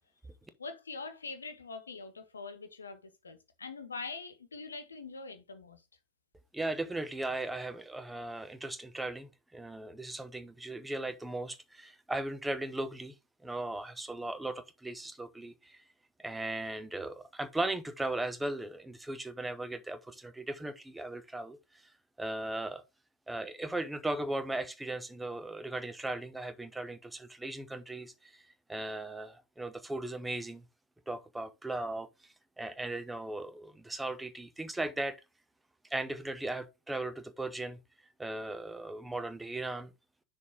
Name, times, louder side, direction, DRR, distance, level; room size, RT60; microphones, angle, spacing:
voice 1, 0.6-5.8, left 4 dB, 75° left, 1.1 m, -43 dB
voice 2, 6.5-13.1 13.4-15.8 16.2-21.6 22.2-22.8 23.3-28.4 28.7-30.6 31.1-32.1 32.6-35.1 35.9-37.8 38.2-39.9, right 2 dB, 5° right, 0.7 m, -37 dB
6.3 x 3.6 x 5.1 m
figure-of-eight pair, 90°, 0 cm